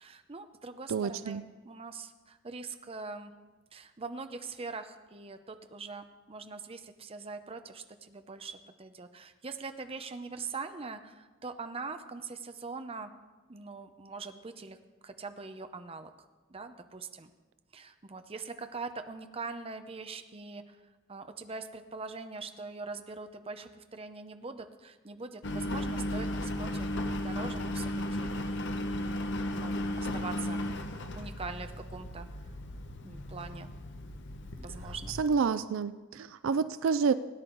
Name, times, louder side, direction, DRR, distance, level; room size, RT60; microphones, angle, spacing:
voice 1, 0.0-3.4 3.7-13.1 13.5-14.8 15.0-16.1 16.5-17.3 17.7-20.8 21.1-28.5 28.9-29.2 29.5-30.6 31.2-32.3 33.0-33.7 34.6-35.1, right 4 dB, 30° right, 8 dB, 0.7 m, -42 dB
voice 2, 0.9-1.4 35.2-37.1, right 5 dB, 70° right, 14 dB, 0.4 m, -28 dB
Engine, 25.4-35.2, left 1 dB, 60° left, 0.9 m, -35 dB
18.0 x 9.7 x 3.9 m, 1.3 s
head